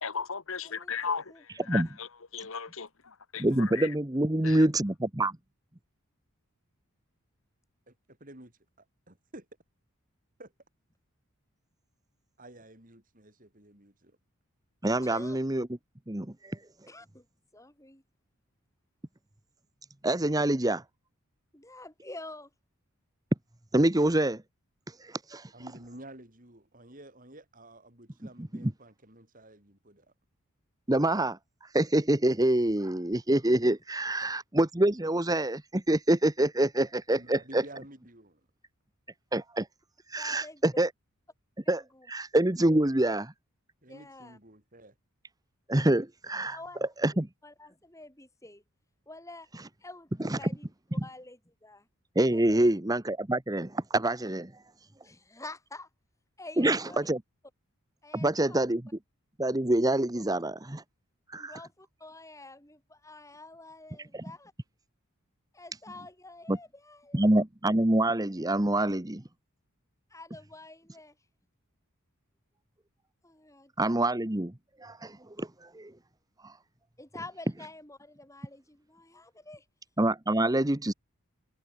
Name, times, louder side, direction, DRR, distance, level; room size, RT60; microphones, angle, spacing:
voice 1, 0.0-1.2 1.7-2.1 2.3-3.4 3.7-3.9 4.4-4.6, left 6 dB, 65° left, 1.4 m, -35 dB
voice 2, 0.6-1.7 15.0-15.4 16.9-17.2 17.5-18.0 21.5-22.5 40.2-40.9 41.6-42.1 43.9-44.4 46.5-48.6 49.1-49.5 49.8-50.7 51.0-51.9 52.3-52.7 55.0-55.9 56.4-57.1 58.0-58.7 60.1-60.2 61.4-64.5 65.5-67.2 70.1-71.1 73.2-73.9 77.0-79.7, left 2 dB, 15° left, 7.7 m, -48 dB
voice 3, 3.4-5.3 14.8-15.7 16.1-16.6 20.0-20.8 23.7-24.4 25.0-25.5 28.4-28.7 30.9-31.4 31.7-37.6 39.3-39.7 40.1-40.9 41.7-43.3 45.7-46.6 47.0-47.3 50.2-50.4 51.0-51.1 52.1-54.5 56.6-57.2 58.1-58.8 59.4-60.8 61.3-61.5 64.1-64.2 66.5-66.6 67.1-69.2 73.8-74.5 74.8-75.9 76.4-76.5 80.0-80.9, right 1 dB, 15° right, 1.1 m, -26 dB
voice 4, 7.9-8.5 8.8-9.5 10.4-10.5 12.4-14.2 25.5-30.1 34.2-34.3 37.1-38.4 43.8-44.9, right 1 dB, 35° right, 6.0 m, -51 dB
head